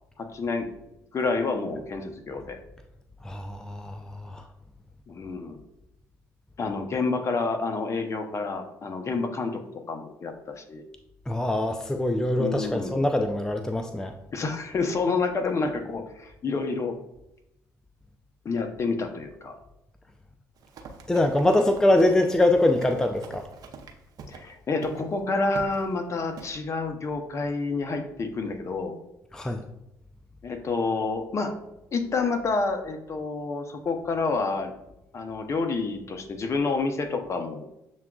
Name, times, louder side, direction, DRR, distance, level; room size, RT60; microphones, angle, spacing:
voice 1, 0.2-0.7 1.1-2.6 5.1-5.6 6.6-9.6 9.9-10.8 12.4-12.9 14.3-17.0 18.4-19.6 24.3-29.0 30.4-31.6 31.9-34.7 35.1-37.8, left 3 dB, 40° left, 6 dB, 0.6 m, -29 dB
voice 2, 3.2-4.4 11.3-14.1 21.1-23.5 29.3-29.6, left 1 dB, 10° left, 5 dB, 0.3 m, -23 dB
Run, 20.6-24.5 24.8-25.0 25.5-25.8 26.4-26.5, right 4 dB, 55° right, 0.6 m, -44 dB
7.0 x 2.3 x 2.2 m, 0.86 s
supercardioid pair, 65°, 7 cm